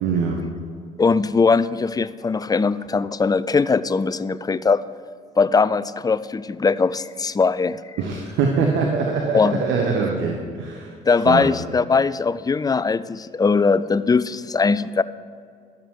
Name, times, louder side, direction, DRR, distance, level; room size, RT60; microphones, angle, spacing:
voice 1, 0.0-0.4 8.0-10.9 11.3-11.5, right 5 dB, 75° right, 1 dB, 1.2 m, -23 dB
voice 2, 1.0-4.9 5.4-7.8 9.3-9.6 11.1-15.0, left 4 dB, 20° left, 15 dB, 0.4 m, -20 dB
11.5 x 7.3 x 4.7 m, 2.2 s
supercardioid pair, 65°, 20 cm